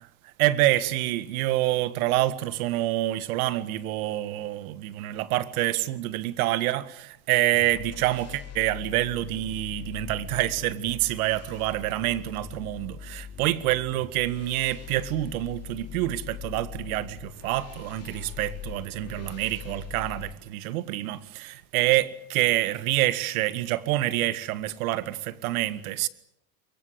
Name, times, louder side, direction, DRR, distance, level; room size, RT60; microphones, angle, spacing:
voice 1, 0.4-26.1, right 15 dB, 75° right, 1.9 m, -27 dB
sound 1, 7.5-20.3, left 10 dB, 35° left, 2.6 m, -42 dB
24.5 x 23.0 x 8.2 m
supercardioid pair, 110°, 43 cm